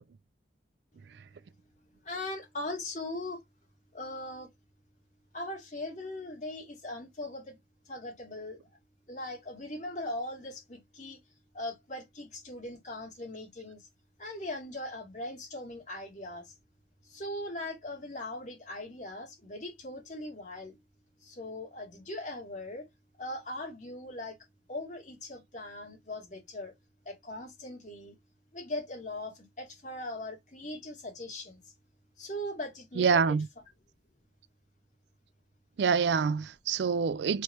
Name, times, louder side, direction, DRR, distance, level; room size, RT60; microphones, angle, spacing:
voice 1, 2.0-3.4 3.9-4.5 5.3-7.6 7.8-8.6 9.1-11.2 11.5-13.9 14.2-16.5 17.0-20.8 21.2-22.9 23.2-24.3 24.7-26.7 27.0-28.2 28.5-31.7 32.2-33.4, left 1 dB, 45° left, 2.8 m, -40 dB
voice 2, 33.0-33.5 35.8-37.4, right 6 dB, 80° right, 0.4 m, -26 dB
4.9 x 3.1 x 2.9 m
head